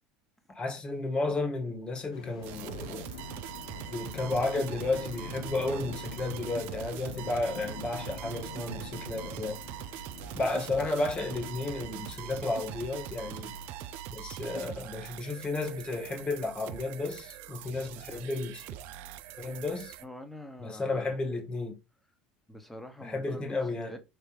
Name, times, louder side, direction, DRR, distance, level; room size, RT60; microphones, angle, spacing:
voice 1, 0.5-3.1 3.9-9.6 10.3-13.5 14.1-18.6 19.4-19.9 20.6-21.8 23.0-24.0, left 2 dB, 30° left, 1.7 m, -33 dB
sound 1, 2.1-14.0, left 5 dB, 90° left, 0.9 m, -46 dB
sound 2, 2.4-20.1, right 11 dB, 65° right, 0.4 m, -42 dB
voice 2, 20.0-21.1 22.5-23.5 23.9-24.0, left 1 dB, 5° left, 1.1 m, -45 dB
4.7 x 3.4 x 3.2 m
hypercardioid pair, 80°, 4 cm